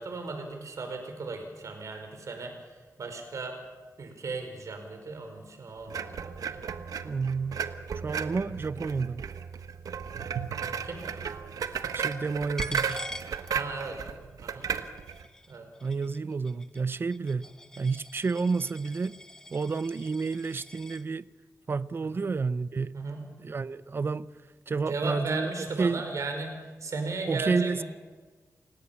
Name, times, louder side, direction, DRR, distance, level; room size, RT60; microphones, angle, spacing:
voice 1, 0.0-3.6 4.0-6.6 10.8-11.1 13.5-14.0 14.4-14.7 15.5-15.7 22.1-22.2 22.9-23.2 24.8-27.8, right 3 dB, 65° right, 5.0 m, -36 dB
sound 1, 5.9-15.3, right 7 dB, 90° right, 1.2 m, -34 dB
voice 2, 7.0-7.7 8.0-9.3 11.9-13.0 15.8-17.5 17.8-19.2 19.5-21.3 21.7-22.9 23.4-24.3 24.7-25.5 25.8-26.0 27.3-27.8, right 4 dB, 40° right, 0.6 m, -30 dB
Coin (dropping), 12.6-14.1 14.4-21.0, left 1 dB, 10° left, 1.0 m, -45 dB
29.0 x 17.0 x 7.1 m
wide cardioid pair, 120°, 6 cm